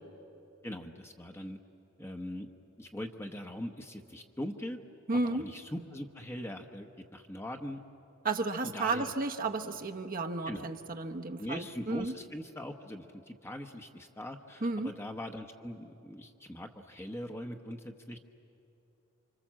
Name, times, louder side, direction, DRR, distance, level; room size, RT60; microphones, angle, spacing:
voice 1, 0.6-1.6 2.0-4.8 5.2-7.8 8.6-9.1 10.5-10.7 11.4-18.2, left 1 dB, 10° left, 5 dB, 0.9 m, -41 dB
voice 2, 5.1-5.5 8.2-12.1 14.6-14.9, right 3 dB, 40° right, 5 dB, 0.9 m, -33 dB
29.0 x 25.5 x 7.4 m, 2.9 s
head